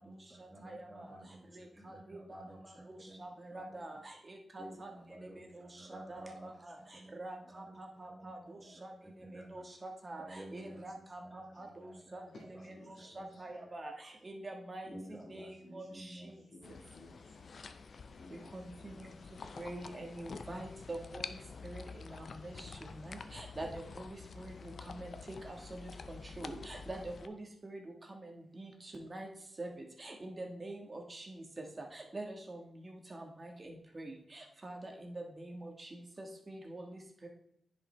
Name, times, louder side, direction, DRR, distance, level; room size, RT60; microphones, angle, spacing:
voice 1, 0.0-3.2 3.5-4.0 4.6-9.7 10.2-12.2 12.5-12.7 13.0-13.7 14.9-16.4 16.6-16.9, right 1 dB, 10° right, -2 dB, 1.2 m, -53 dB
voice 2, 0.6-1.1 1.5-2.4 2.9-6.7 7.1-8.9 9.3-12.2 12.9-16.2 18.5-19.1 19.6-21.4 21.6-27.8 28.1-29.3 29.6-29.7 30.0-31.4 31.9-37.3, right 2 dB, 30° right, 2 dB, 1.5 m, -46 dB
voice 3, 12.3-13.6 14.8-17.4 18.2-19.7, left 2 dB, 75° left, -4 dB, 1.6 m, -58 dB
sound 1, 16.6-27.3, left 4 dB, 60° left, 0.5 m, -48 dB
9.9 x 5.4 x 3.3 m, 0.71 s
cardioid pair, 90°, 0 cm